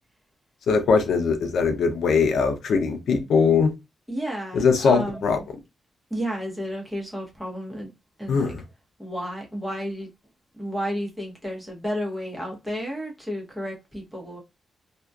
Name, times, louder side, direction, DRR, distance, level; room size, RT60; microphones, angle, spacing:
voice 1, 0.7-3.7 4.5-5.4 8.3-8.6, left 5 dB, 75° left, 0.4 m, -21 dB
voice 2, 4.1-5.4 6.1-7.9 8.2-8.5 9.0-10.1 10.5-14.4, equal, 5° right, 0.8 m, -32 dB
2.6 x 2.2 x 2.2 m
wide cardioid pair, 150°, 0 cm